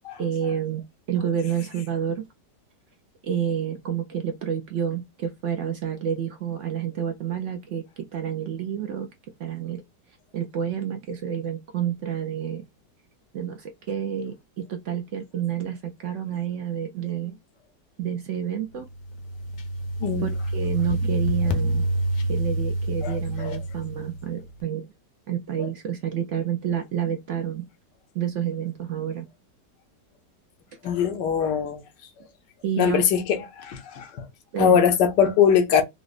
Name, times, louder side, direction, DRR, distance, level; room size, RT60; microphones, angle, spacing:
voice 1, 0.2-0.8 1.1-2.2 3.2-9.1 9.4-9.8 10.3-12.6 13.3-17.4 18.0-18.9 20.2-21.9 22.3-24.8 25.3-27.7 28.1-29.3 32.6-33.0 34.5-34.8, right 9 dB, 75° right, 0.7 m, -29 dB
sound 1, 18.8-24.5, right 1 dB, 60° left, 0.8 m, -27 dB
voice 2, 23.0-23.6 30.8-31.8 32.8-34.3 34.6-35.8, left 8 dB, 85° left, 1.4 m, -22 dB
4.8 x 2.1 x 2.4 m
omnidirectional pair, 1.8 m